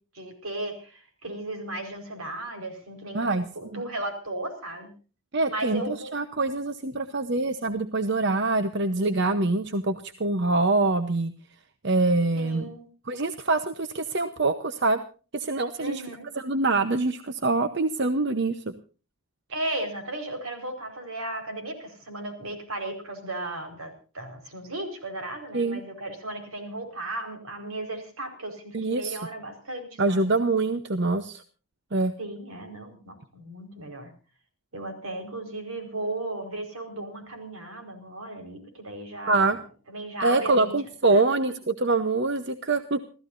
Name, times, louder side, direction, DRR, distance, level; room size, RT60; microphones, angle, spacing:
voice 1, 0.1-4.9 5.5-6.1 12.3-12.9 15.8-16.3 19.5-30.4 32.2-34.1 34.7-39.6 39.9-40.7 41.1-41.2, right 2 dB, 80° right, 5 dB, 4.7 m, -35 dB
voice 2, 3.1-3.5 3.7-3.8 5.3-9.9 10.2-11.3 11.8-12.7 13.1-15.0 15.3-16.0 16.4-18.7 25.5-25.8 28.7-29.2 30.0-31.4 31.9-32.1 39.3-39.6 40.2-43.0, right 3 dB, 55° right, 9 dB, 0.9 m, -25 dB
29.5 x 14.5 x 2.6 m, 0.36 s
head